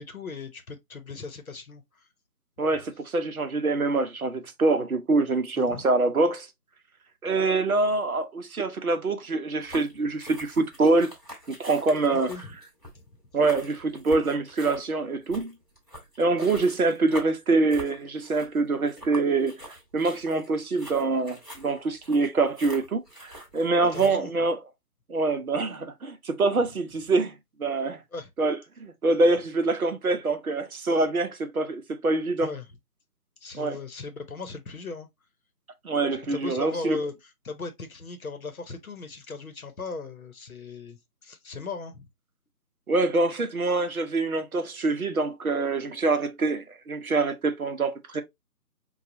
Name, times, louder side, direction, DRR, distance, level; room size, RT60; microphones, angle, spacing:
voice 1, 0.0-2.1 5.5-5.9 12.1-12.6 12.9-13.0 23.9-24.3 28.1-28.3 32.4-32.7 33.4-35.1 36.1-42.1, left 4 dB, 60° left, 0.9 m, -38 dB
voice 2, 2.6-6.5 7.2-11.1 11.6-12.3 13.3-15.5 16.2-19.6 19.9-24.6 25.1-27.3 27.6-28.0 28.4-32.5 33.6-33.8 35.8-37.0 42.9-48.2, right 3 dB, 60° right, 0.8 m, -25 dB
sound 1, 9.6-24.1, equal, ahead, 1.1 m, -45 dB
4.7 x 2.3 x 2.6 m
figure-of-eight pair, 160°, 48 cm